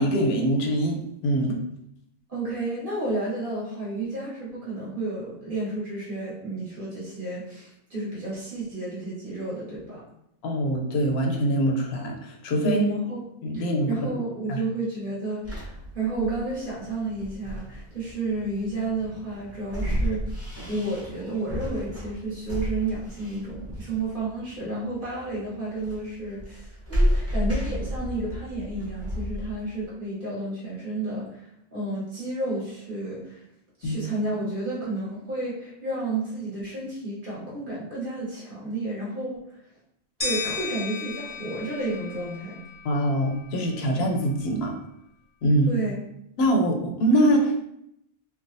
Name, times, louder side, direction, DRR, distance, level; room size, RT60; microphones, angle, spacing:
voice 1, 0.0-1.6 10.4-12.8 13.4-13.9 14.5-14.6 33.8-34.0 42.8-44.7 45.4-45.7 46.4-47.6, right 1 dB, 80° left, 2 dB, 0.8 m, -23 dB
voice 2, 2.3-10.0 12.6-13.2 13.5-20.4 20.7-33.4 33.8-39.4 40.2-42.6 45.7-46.0, right 2 dB, 55° right, -7 dB, 1.3 m, -31 dB
sound 1, 15.4-29.9, equal, 15° right, 0.7 m, -31 dB
sound 2, 40.2-43.1, left 4 dB, 45° left, 0.6 m, -34 dB
3.3 x 2.1 x 2.6 m, 0.78 s
omnidirectional pair, 1.0 m